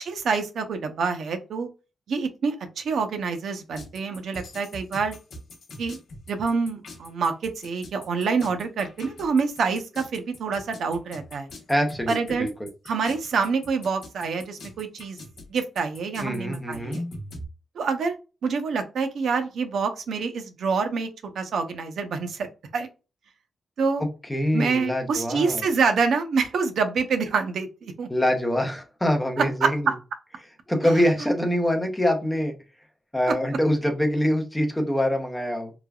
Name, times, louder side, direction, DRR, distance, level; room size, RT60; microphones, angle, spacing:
voice 1, 0.0-1.7 2.1-5.2 5.8-6.0 6.3-11.5 12.1-12.5 12.9-15.2 15.5-17.0 17.8-18.2 18.4-22.5 22.7-22.9 23.8-24.0 24.5-28.1 29.4-29.9 30.8-30.9 33.3-33.4, right 5 dB, 70° right, 7 dB, 0.5 m, -26 dB
sound 1, 3.7-17.5, left 1 dB, 65° left, 0.8 m, -42 dB
voice 2, 11.7-12.7 16.2-17.0 24.3-25.7 28.1-29.8 30.7-32.5 33.1-35.7, equal, 5° left, 3 dB, 0.6 m, -24 dB
3.2 x 2.2 x 2.3 m, 0.30 s
wide cardioid pair, 180°, 0 cm